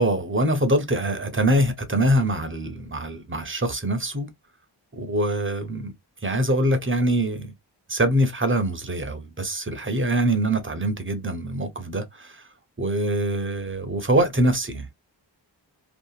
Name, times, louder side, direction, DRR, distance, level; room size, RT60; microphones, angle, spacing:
voice 1, 0.0-4.3 4.9-5.9 6.2-7.5 7.9-12.5 12.8-14.9, right 1 dB, 25° right, 0.8 m, -24 dB
2.8 x 2.4 x 2.3 m
wide cardioid pair, 70°, 44 cm